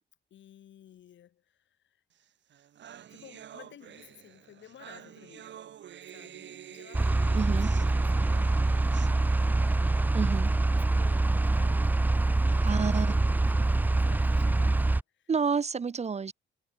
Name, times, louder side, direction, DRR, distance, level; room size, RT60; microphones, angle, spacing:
voice 1, 0.3-2.0 3.1-5.6 6.1-12.0 12.6-15.3, left 10 dB, 70° left, 6.3 m, -54 dB
sound 1, 2.2-2.3 2.5-10.1, right 10 dB, 65° right, 7.7 m, -48 dB
sound 2, 6.9-15.0, right 2 dB, 10° right, 0.4 m, -25 dB
voice 2, 7.3-7.7 10.1-10.5 12.5-13.1 15.3-16.3, right 5 dB, 35° right, 1.1 m, -29 dB
cardioid pair, 90°, 20 cm